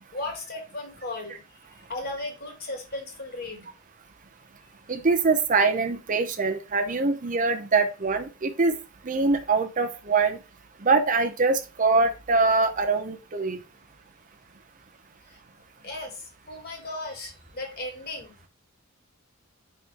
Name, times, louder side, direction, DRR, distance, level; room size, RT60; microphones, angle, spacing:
voice 1, 0.1-1.4 1.9-3.7 15.3-15.4 15.8-18.3, left 2 dB, 50° left, 3 dB, 2.0 m, -36 dB
voice 2, 4.9-8.7 9.0-10.4 10.8-13.6, right 4 dB, 40° right, 7 dB, 0.7 m, -23 dB
5.3 x 4.3 x 4.3 m, 0.30 s
head